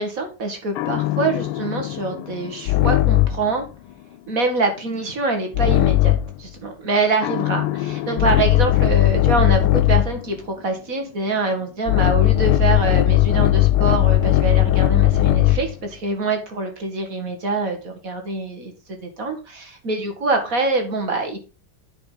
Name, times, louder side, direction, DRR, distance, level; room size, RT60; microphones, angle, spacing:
voice 1, 0.0-3.7 4.3-21.4, right 3 dB, 40° right, 5 dB, 2.2 m, -25 dB
sound 1, 0.8-3.5 5.5-6.4 7.2-10.2 11.9-15.7, left 16 dB, 85° left, 1.4 m, -18 dB
10.0 x 5.3 x 3.9 m, 0.32 s
omnidirectional pair, 2.3 m